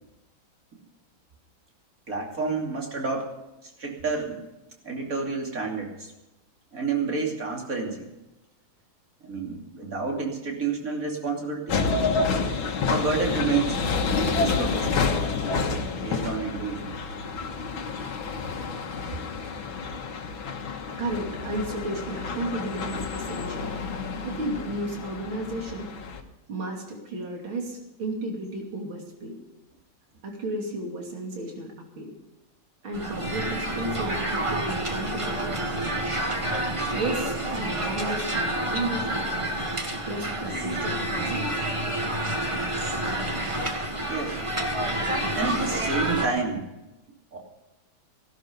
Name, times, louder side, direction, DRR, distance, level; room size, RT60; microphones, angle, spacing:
voice 1, 2.1-3.4 3.6-4.4 4.8-6.1 6.7-8.1 9.2-11.8 12.9-13.8 14.3-15.1 16.0-17.0 44.1-44.4 45.3-46.7 47.3-47.4, right 4 dB, 40° right, 0 dB, 3.2 m, -29 dB
sound 1, 11.7-26.2, left 4 dB, 75° left, 2.2 m, -29 dB
voice 2, 21.0-23.7 24.2-25.9 26.5-29.3 30.2-32.1 32.8-36.3 36.9-39.5 40.1-41.5, right 2 dB, 75° right, 1 dB, 3.5 m, -33 dB
sound 2, 32.9-46.3, right 1 dB, 15° right, 1.5 m, -28 dB
16.5 x 12.0 x 5.3 m, 0.99 s
omnidirectional pair, 2.2 m